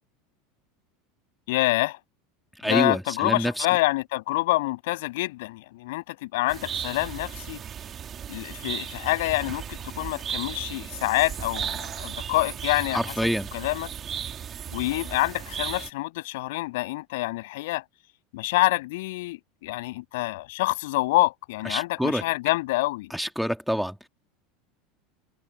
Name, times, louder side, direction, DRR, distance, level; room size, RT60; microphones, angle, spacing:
voice 1, 1.5-2.0 2.6-7.6 8.3-13.0 13.5-13.9 14.7-17.8 18.3-23.1, left 20 dB, 75° left, 7.2 m, -27 dB
voice 2, 2.6-3.7 12.9-13.5 21.6-22.2 23.1-24.1, equal, ahead, 2.2 m, -27 dB
sound 1, 6.5-15.9, right 8 dB, 35° right, 3.2 m, -35 dB
supercardioid pair, 105°, 0 cm